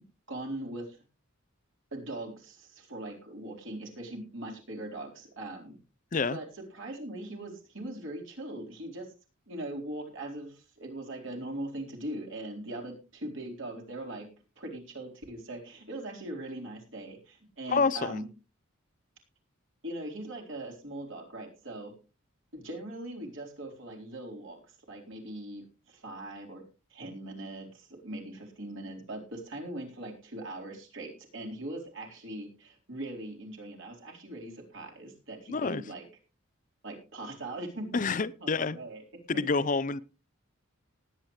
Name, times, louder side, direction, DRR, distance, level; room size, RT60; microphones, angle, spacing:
voice 1, 0.3-1.0 1.9-5.8 6.3-6.5 6.7-9.1 9.5-14.3 14.6-18.3 19.8-21.9 22.5-24.6 24.9-26.6 26.9-36.1 36.8-39.0, right 1 dB, 65° right, 0 dB, 4.2 m, -40 dB
voice 2, 17.7-18.2 35.5-35.8 37.9-38.8 39.3-40.0, left 4 dB, 40° left, 17 dB, 0.5 m, -28 dB
19.0 x 9.2 x 3.2 m, 0.32 s
head